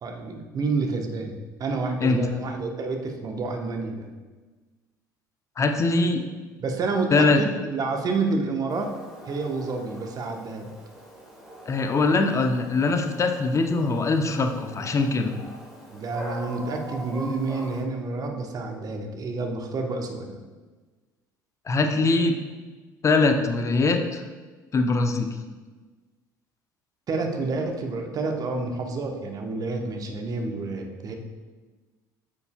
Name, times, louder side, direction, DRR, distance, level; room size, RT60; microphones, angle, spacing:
voice 1, 0.0-4.1 6.6-9.0 9.3-10.7 15.9-20.3 27.1-31.1, right 3 dB, 35° right, 3 dB, 1.2 m, -29 dB
voice 2, 5.6-6.2 7.1-7.4 11.7-15.3 21.7-22.4 23.0-24.2 24.7-25.3, left 3 dB, 30° left, 5 dB, 0.9 m, -22 dB
Dog, 8.7-17.8, right 1 dB, ahead, 2.4 m, -43 dB
9.8 x 6.8 x 2.3 m, 1.3 s
figure-of-eight pair, 60°, 10 cm